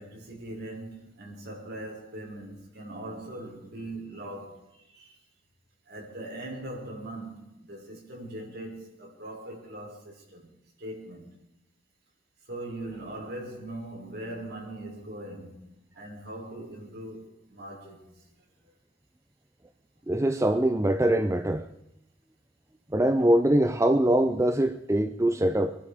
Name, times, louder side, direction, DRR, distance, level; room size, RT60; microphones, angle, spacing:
voice 1, 0.0-5.2 5.9-10.5 10.8-11.3 12.5-15.6 15.9-18.2, right 1 dB, 55° right, 5.8 m, -40 dB
voice 2, 20.1-21.7 22.9-25.8, right 1 dB, 15° right, 0.6 m, -23 dB
24.5 x 11.5 x 5.1 m
head